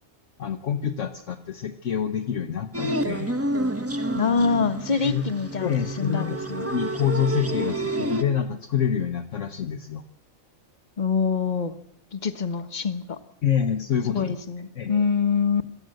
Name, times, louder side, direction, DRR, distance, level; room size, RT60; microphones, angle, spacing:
voice 1, 0.4-3.3 5.0-5.2 5.6-6.4 6.7-10.0 13.4-14.4 14.8-15.0, left 8 dB, 65° left, 6 dB, 1.4 m, -27 dB
sound 1, 2.7-8.2, right 1 dB, 10° right, 1.2 m, -29 dB
voice 2, 4.1-6.7 11.0-11.7 12.1-13.2 14.1-15.6, left 5 dB, 35° left, 11 dB, 1.3 m, -25 dB
26.5 x 13.5 x 7.8 m, 0.81 s
omnidirectional pair, 1.4 m